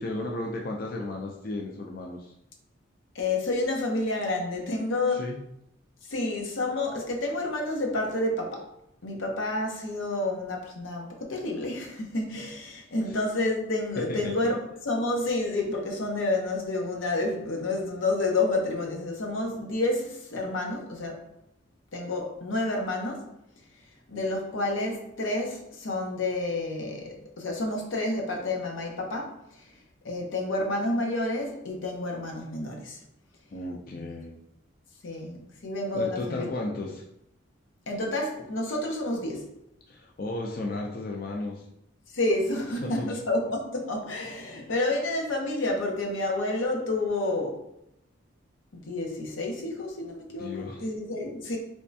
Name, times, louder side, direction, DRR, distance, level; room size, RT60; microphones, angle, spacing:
voice 1, 0.0-2.3 5.1-5.4 14.1-14.3 33.5-34.4 35.9-37.0 39.9-41.6 42.8-43.2 50.4-50.8, left 2 dB, 45° left, 0 dB, 0.4 m, -34 dB
voice 2, 3.1-5.3 6.1-8.7 9.0-21.2 21.9-23.3 24.1-29.7 30.0-33.0 33.9-34.1 35.0-36.5 37.9-39.5 42.1-47.7 48.7-51.6, left 2 dB, 85° left, 1 dB, 0.8 m, -29 dB
3.4 x 3.1 x 2.6 m, 0.78 s
head